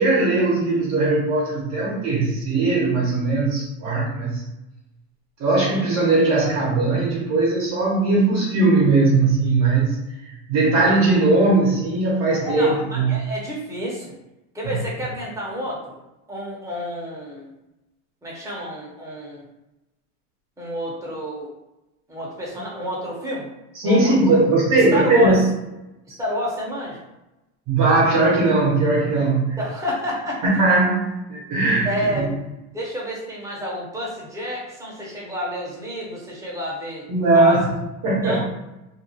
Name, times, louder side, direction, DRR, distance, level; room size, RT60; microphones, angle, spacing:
voice 1, 0.0-4.4 5.4-10.0 10.5-13.1 23.7-25.4 27.7-29.6 30.4-31.9 32.1-32.3 37.1-37.7 38.0-38.4, right 2 dB, 45° right, -4 dB, 0.9 m, -19 dB
voice 2, 12.4-14.1 14.5-16.0 16.3-17.5 18.2-19.5 20.6-21.5 22.1-23.5 23.8-24.4 24.7-25.4 26.2-27.0 29.6-30.6 31.8-32.3 32.7-37.0 37.3-37.6 38.2-38.4, equal, 10° right, -5 dB, 0.8 m, -29 dB
2.6 x 2.3 x 2.7 m, 0.95 s
supercardioid pair, 135°, 35 cm